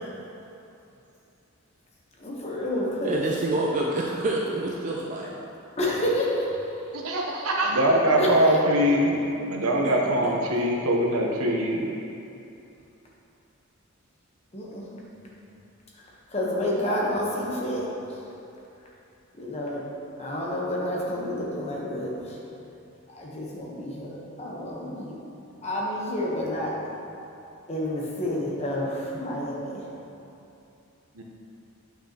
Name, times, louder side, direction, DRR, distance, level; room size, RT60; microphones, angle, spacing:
voice 1, 2.2-3.2 5.8-6.7 8.2-8.6 14.5-15.0 16.0-18.2 19.3-19.8 20.2-22.4 23.1-25.2 25.6-26.8 27.7-29.9, left 1 dB, 30° left, -4 dB, 1.0 m, -29 dB
voice 2, 3.0-5.5, right 2 dB, 35° right, -2 dB, 0.4 m, -27 dB
voice 3, 6.9-9.2 9.5-11.9 31.1-31.2, right 1 dB, 90° right, 0 dB, 0.9 m, -23 dB
8.3 x 5.7 x 2.9 m, 2.8 s
head